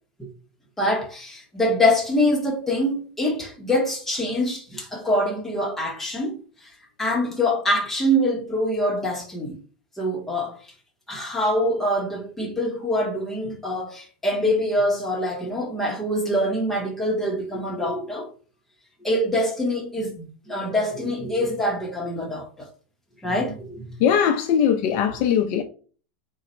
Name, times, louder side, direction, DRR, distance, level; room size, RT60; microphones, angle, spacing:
voice 1, 0.8-6.7 7.0-9.6 10.0-10.6 11.1-18.3 19.0-22.7 23.2-23.9, left 1 dB, 5° left, 0.8 m, -24 dB
voice 2, 24.0-25.6, left 8 dB, 40° left, 0.4 m, -20 dB
3.8 x 2.1 x 4.1 m
supercardioid pair, 165°, 6 cm